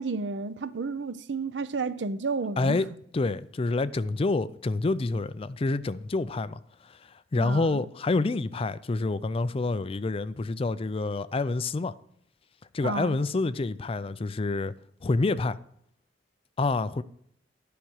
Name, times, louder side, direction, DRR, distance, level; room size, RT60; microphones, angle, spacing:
voice 1, 0.0-2.8 7.4-7.9 12.8-13.2, right 4 dB, 75° right, 0.6 m, -31 dB
voice 2, 2.6-2.9 3.1-11.9 12.7-14.7 15.0-15.6 16.6-17.0, left 3 dB, 30° left, 0.4 m, -28 dB
10.0 x 5.9 x 6.3 m
head